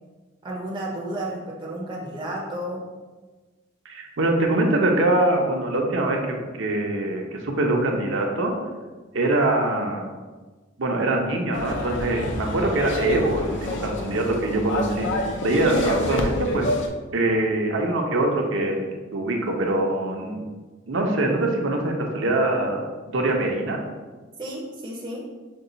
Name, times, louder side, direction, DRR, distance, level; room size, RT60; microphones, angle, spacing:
voice 1, 0.4-2.8 24.4-25.3, right 1 dB, 25° right, -4 dB, 0.6 m, -32 dB
voice 2, 3.8-8.5 9.1-10.0 10.8-16.7 17.1-18.9 19.1-20.4 20.9-23.8, right 2 dB, 65° right, 1 dB, 0.7 m, -23 dB
sound 1, 11.5-16.9, left 1 dB, 65° left, 0.6 m, -27 dB
5.3 x 2.3 x 3.9 m, 1.3 s
head